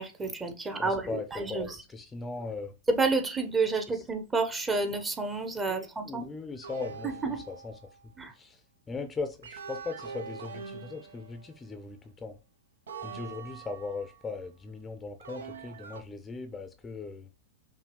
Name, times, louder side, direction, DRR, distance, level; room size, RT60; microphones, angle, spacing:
voice 1, 0.0-1.7 2.9-6.3 7.0-7.4 8.2-8.3, right 3 dB, 15° right, 0.8 m, -30 dB
voice 2, 0.8-2.7 3.9-4.0 5.7-7.8 8.3-8.6 8.9-12.4 13.0-17.3, left 4 dB, 15° left, 0.5 m, -39 dB
sound 1, 6.6-8.1 9.4-11.8 12.9-14.3 15.2-16.0, right 5 dB, 80° right, 0.7 m, -44 dB
5.5 x 2.3 x 3.0 m
hypercardioid pair, 110°, 0 cm